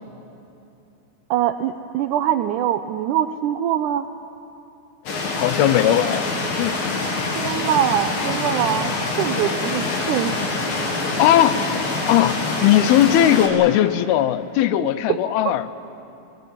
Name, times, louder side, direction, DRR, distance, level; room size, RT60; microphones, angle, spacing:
voice 1, 1.3-4.0 7.3-8.9 9.2-10.5 15.4-15.5, right 11 dB, 90° right, 9 dB, 1.7 m, -23 dB
sound 1, 5.1-13.5, left 3 dB, 70° left, 4.3 m, -25 dB
voice 2, 5.3-6.3 6.6-6.8 11.2-15.7, left 11 dB, 90° left, 14 dB, 2.7 m, -18 dB
23.0 x 18.0 x 9.9 m, 2.9 s
omnidirectional pair, 4.3 m